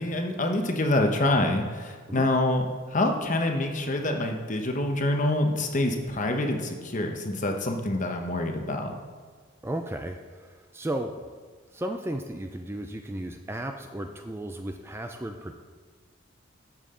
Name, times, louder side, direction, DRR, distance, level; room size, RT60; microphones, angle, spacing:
voice 1, 0.0-8.9, left 1 dB, 35° left, 4 dB, 1.0 m, -26 dB
voice 2, 9.6-11.2 11.7-15.6, right 1 dB, 10° right, 5 dB, 0.4 m, -34 dB
12.5 x 7.4 x 3.7 m, 1.5 s
head